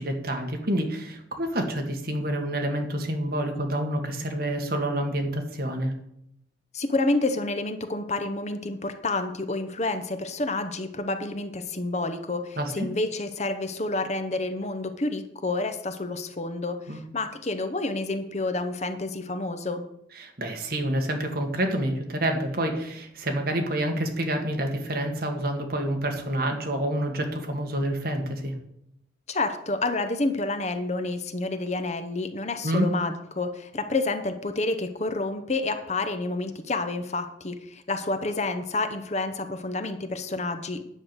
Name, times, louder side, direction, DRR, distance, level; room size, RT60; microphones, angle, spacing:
voice 1, 0.0-5.9 12.6-12.9 16.9-17.0 20.2-28.5 32.6-32.9, right 1 dB, 50° right, 3 dB, 1.8 m, -28 dB
voice 2, 6.7-19.8 29.3-40.8, left 2 dB, 35° left, 8 dB, 0.8 m, -29 dB
10.0 x 5.8 x 8.0 m, 0.77 s
head